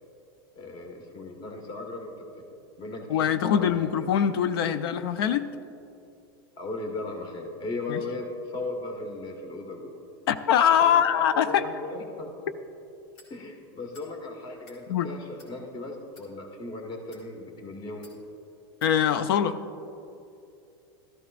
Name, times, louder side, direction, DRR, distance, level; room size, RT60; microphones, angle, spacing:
voice 1, 0.5-2.2 2.8-3.9 6.6-9.9 10.8-12.5 13.3-18.1, left 2 dB, 35° left, 3 dB, 1.6 m, -37 dB
voice 2, 3.1-5.5 7.9-8.0 10.3-11.7 14.9-15.1 18.8-19.6, left 9 dB, 75° left, 12 dB, 0.5 m, -23 dB
sound 1, 13.1-13.3 13.9-14.1 14.5-14.8 15.4-15.5 16.1-16.3 17.0-17.3 18.0-18.2 18.8-18.9, left 3 dB, 60° left, 2.5 m, -54 dB
13.0 x 12.5 x 2.5 m, 2.7 s
supercardioid pair, 110°, 13 cm